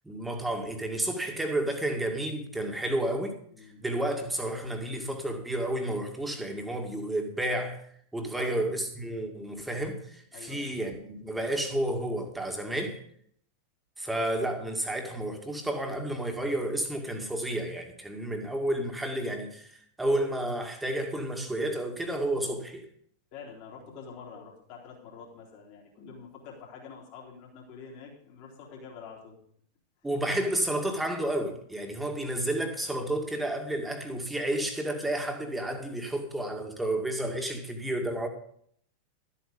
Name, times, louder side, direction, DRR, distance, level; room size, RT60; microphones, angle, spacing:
voice 1, 0.0-3.4 3.8-7.8 8.1-13.0 14.0-19.7 20.0-22.8 30.0-38.3, right 1 dB, 5° right, 2.2 m, -31 dB
voice 2, 3.5-3.8 8.3-8.6 10.3-10.7 23.3-29.4, left 6 dB, 45° left, 3.8 m, -46 dB
13.0 x 8.5 x 5.3 m
figure-of-eight pair, 90°, 0 cm